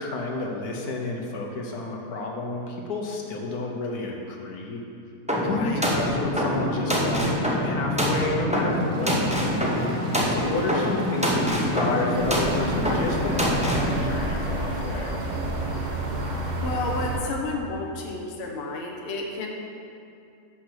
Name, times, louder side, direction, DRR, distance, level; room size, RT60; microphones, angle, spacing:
voice 1, 0.0-4.8 5.3-9.8 10.3-15.1, left 2 dB, 70° left, 0 dB, 1.4 m, -30 dB
sound 1, 5.3-13.9, equal, 10° right, 0.4 m, -25 dB
voice 2, 5.4-5.8 11.3-11.7 16.6-19.5, left 3 dB, 50° left, -1 dB, 1.0 m, -32 dB
Applause, 8.5-17.2, right 1 dB, 80° right, 1.8 m, -42 dB
sound 2, 12.1-17.2, right 1 dB, 40° right, 0.7 m, -29 dB
6.5 x 5.8 x 5.9 m, 2.6 s
omnidirectional pair, 1.7 m